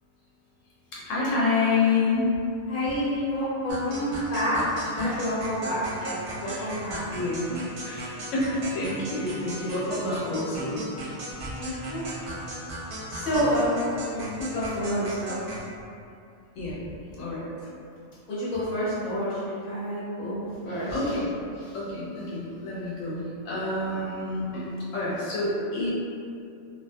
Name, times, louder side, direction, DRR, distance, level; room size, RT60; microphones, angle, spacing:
voice 1, 0.9-2.2 5.0-5.2 6.4-6.7 7.1-7.6 7.8-10.9 11.5-11.8 16.6-16.8 17.2-17.5 20.7-21.3 21.6-24.6 24.9-25.9, left 3 dB, 90° left, -7 dB, 1.0 m, -28 dB
voice 2, 2.7-7.0 11.6-12.0 13.1-15.3 18.3-21.0, equal, 45° left, -10 dB, 1.1 m, -28 dB
sound 1, 3.7-15.7, right 1 dB, 70° right, 0.9 m, -37 dB
2.4 x 2.1 x 2.5 m, 2.5 s
omnidirectional pair, 1.3 m